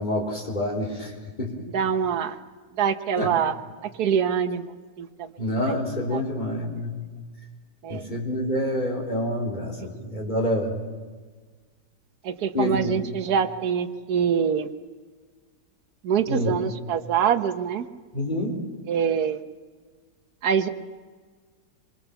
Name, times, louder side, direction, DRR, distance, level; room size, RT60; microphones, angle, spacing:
voice 1, 0.0-1.7 3.2-3.3 5.4-7.0 7.9-10.7 12.5-13.0 16.3-16.6 18.1-18.6, left 1 dB, 25° left, -1 dB, 4.1 m, -27 dB
voice 2, 1.7-2.4 2.8-3.5 4.0-4.7 5.0-5.3 6.1-6.2 7.8-8.0 12.2-14.7 16.0-17.9 18.9-19.4 20.4-20.7, right 7 dB, 65° right, 8 dB, 1.5 m, -24 dB
25.5 x 22.5 x 7.1 m, 1.5 s
omnidirectional pair, 1.8 m